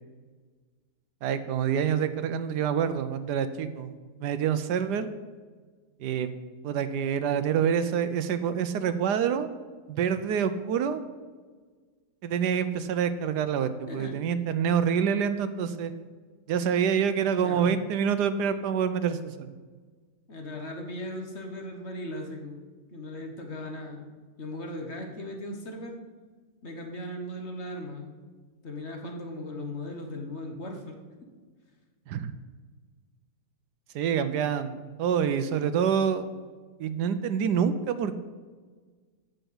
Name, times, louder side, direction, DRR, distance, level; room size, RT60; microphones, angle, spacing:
voice 1, 1.2-5.1 6.0-6.3 6.6-9.5 9.9-11.0 12.2-15.9 16.5-19.5 32.1-32.3 33.9-36.2 36.8-38.1, right 7 dB, 75° right, 12 dB, 1.2 m, -27 dB
voice 2, 17.4-17.7 20.3-22.6 22.9-24.0 24.4-25.9 26.6-28.2 28.6-31.0, left 1 dB, 40° left, 3 dB, 1.4 m, -38 dB
8.9 x 6.6 x 7.9 m, 1.5 s
omnidirectional pair, 1.9 m